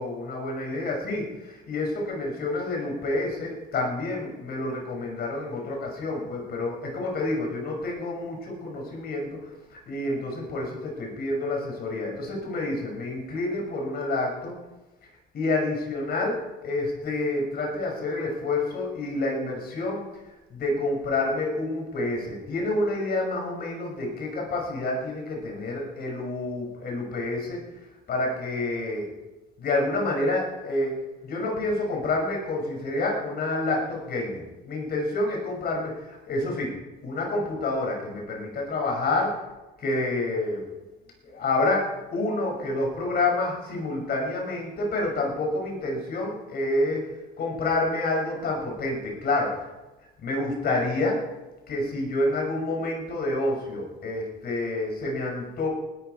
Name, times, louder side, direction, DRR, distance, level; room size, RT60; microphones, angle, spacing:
voice 1, 0.0-14.5 15.3-20.0 20.5-27.8 28.1-29.1 29.6-36.7 37.0-39.4 39.8-40.6 41.2-47.0 47.4-49.7 50.2-51.2 51.7-55.7, left 2 dB, 55° left, 0 dB, 6.5 m, -28 dB
19.5 x 12.5 x 4.7 m, 1.1 s
cardioid pair, 105°, 19 cm